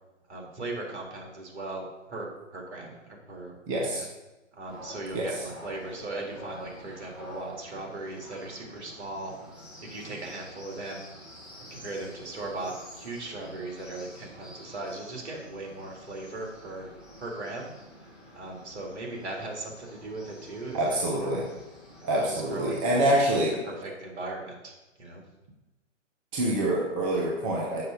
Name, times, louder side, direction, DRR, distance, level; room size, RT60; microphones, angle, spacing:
voice 1, 0.3-4.1 4.6-9.3 9.8-11.0 11.6-16.9 17.2-17.7 18.3-21.3 22.1-24.7 25.0-25.2, right 2 dB, 60° right, -1 dB, 2.5 m, -38 dB
voice 2, 3.7-4.0 5.1-5.3 20.7-21.4 22.0-23.5 26.3-27.8, right 1 dB, 20° right, -2 dB, 0.8 m, -26 dB
sound 1, 4.7-23.0, equal, ahead, 1.9 m, -48 dB
6.7 x 5.5 x 5.1 m, 1.1 s
hypercardioid pair, 145°, 38 cm